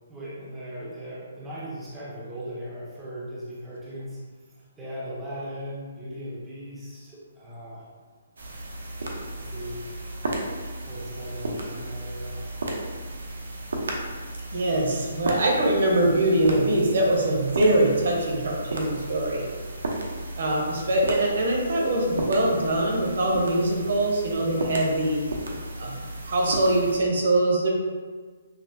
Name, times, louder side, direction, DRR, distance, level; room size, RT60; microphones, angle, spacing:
voice 1, 0.1-4.2 4.8-7.9 9.3-10.1 10.9-12.4, equal, 5° right, -9 dB, 0.5 m, -38 dB
sound 1, 8.4-27.0, right 2 dB, 80° right, 0.7 m, -34 dB
voice 2, 14.5-19.4 20.4-25.2 25.8-26.0 26.2-27.7, right 1 dB, 50° right, -1 dB, 0.8 m, -23 dB
5.8 x 2.0 x 2.6 m, 1.4 s
hypercardioid pair, 180°, 0 cm